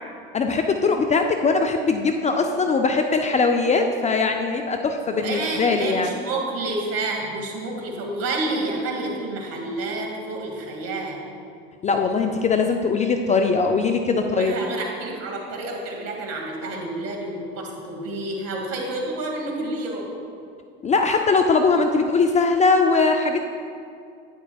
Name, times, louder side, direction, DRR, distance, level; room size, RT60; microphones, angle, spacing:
voice 1, 0.3-6.1 11.8-14.5 20.8-23.4, left 4 dB, 20° left, 5 dB, 0.5 m, -21 dB
voice 2, 5.0-11.3 14.2-20.1, right 2 dB, 50° right, 0 dB, 2.2 m, -29 dB
11.0 x 9.3 x 2.4 m, 2.4 s
hypercardioid pair, 80°, 31 cm